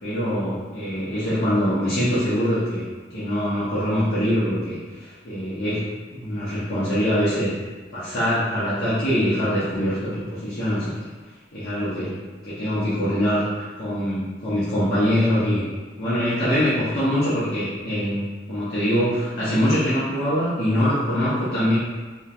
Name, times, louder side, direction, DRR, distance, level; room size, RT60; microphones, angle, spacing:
voice 1, 0.0-2.8 3.1-5.9 6.1-7.5 7.9-10.9 11.5-12.2 12.4-15.7 16.0-21.8, equal, 50° left, -13 dB, 0.6 m, -23 dB
2.4 x 2.1 x 2.7 m, 1.4 s
head